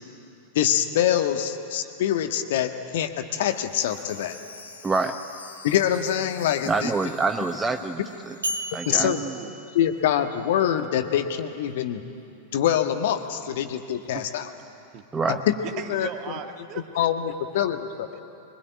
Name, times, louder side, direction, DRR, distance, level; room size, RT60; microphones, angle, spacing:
voice 1, 0.5-4.4 5.6-6.9 8.0-8.1 8.9-9.2 9.7-12.0 12.5-14.5 15.3-15.5 15.9-16.1 16.9-18.1, left 10 dB, 55° left, 7 dB, 1.5 m, -24 dB
Chime, 3.4-9.3 9.7-9.8 10.3-10.4, left 4 dB, 75° left, 2.6 m, -47 dB
voice 2, 4.8-5.2 6.7-8.3 8.7-9.1 15.1-15.4, right 3 dB, 15° right, 8 dB, 0.9 m, -26 dB
sound 1, 8.4-10.5, right 1 dB, 75° right, 2.3 m, -35 dB
voice 3, 8.8-9.5 14.1-14.2 14.9-15.0 15.6-17.1, right 9 dB, 40° right, 7 dB, 1.8 m, -37 dB
23.5 x 21.5 x 9.4 m, 2.7 s
figure-of-eight pair, 90°, 0 cm